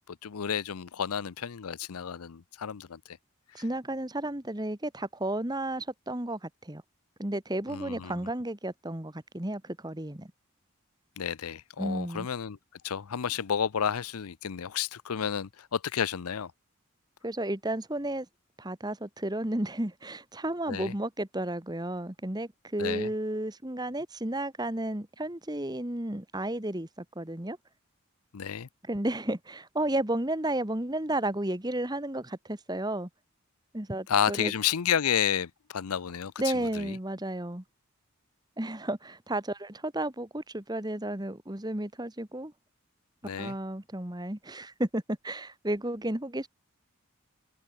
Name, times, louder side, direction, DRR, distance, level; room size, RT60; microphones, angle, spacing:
voice 1, 0.1-3.2 7.7-8.3 11.2-12.6 12.8-16.5 20.7-20.9 22.8-23.1 28.3-28.7 34.1-37.0 43.2-43.6, left 8 dB, 85° left, 0.6 m, -31 dB
voice 2, 3.5-6.8 7.2-10.3 11.8-12.3 17.2-18.3 18.6-27.6 28.9-33.1 33.7-34.5 36.4-37.6 38.6-42.5 43.4-46.5, right 1 dB, 20° right, 1.5 m, -32 dB
open air
head